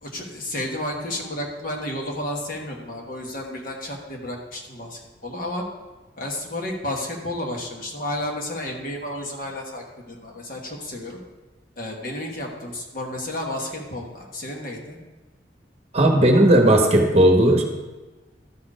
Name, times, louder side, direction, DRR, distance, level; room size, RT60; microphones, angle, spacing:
voice 1, 0.0-5.6 6.2-11.2 11.8-15.0, left 1 dB, 50° left, 0 dB, 1.4 m, -32 dB
voice 2, 15.9-17.6, right 1 dB, 35° right, 2 dB, 1.0 m, -15 dB
12.5 x 4.5 x 5.0 m, 1.2 s
head